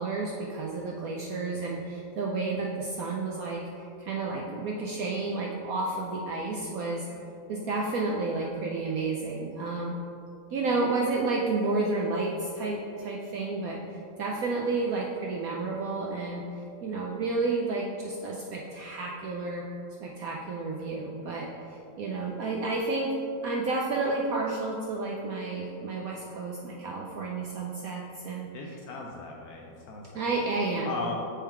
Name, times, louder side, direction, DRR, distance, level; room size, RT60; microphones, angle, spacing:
voice 1, 0.0-7.1 7.5-10.0 10.5-19.7 20.0-23.1 23.4-28.5 30.1-30.9, right 3 dB, 75° right, -2 dB, 0.8 m, -31 dB
voice 2, 28.5-30.5 30.8-31.2, left 4 dB, 75° left, 0 dB, 0.9 m, -38 dB
6.8 x 3.8 x 4.3 m, 2.6 s
omnidirectional pair, 2.1 m